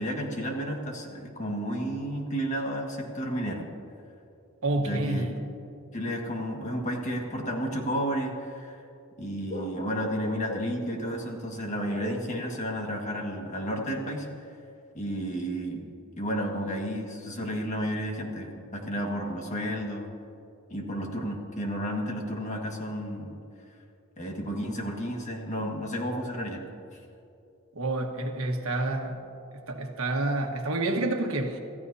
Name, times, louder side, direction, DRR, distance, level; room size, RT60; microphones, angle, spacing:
voice 1, 0.0-3.7 4.8-5.3 5.9-8.8 9.2-14.3 14.9-15.9 16.2-20.1 20.7-23.4 24.2-26.6, equal, 35° left, 1 dB, 1.8 m, -32 dB
voice 2, 4.6-5.4 27.7-29.2 29.5-31.6, right 2 dB, 70° right, 3 dB, 1.4 m, -28 dB
26.5 x 14.5 x 2.8 m, 2.7 s
head